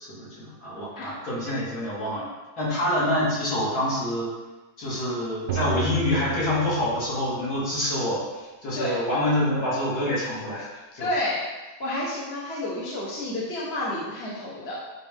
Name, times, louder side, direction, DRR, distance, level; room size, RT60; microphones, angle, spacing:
voice 1, 0.1-2.3 2.6-4.3 4.8-10.7 10.9-11.1, left 1 dB, 55° left, -8 dB, 2.7 m, -26 dB
sound 1, 5.5-7.4, right 4 dB, 65° right, 1.2 m, -33 dB
voice 2, 11.0-11.4 11.8-14.8, left 1 dB, 40° left, -7 dB, 1.4 m, -30 dB
10.0 x 3.6 x 3.6 m, 1.1 s
omnidirectional pair, 2.0 m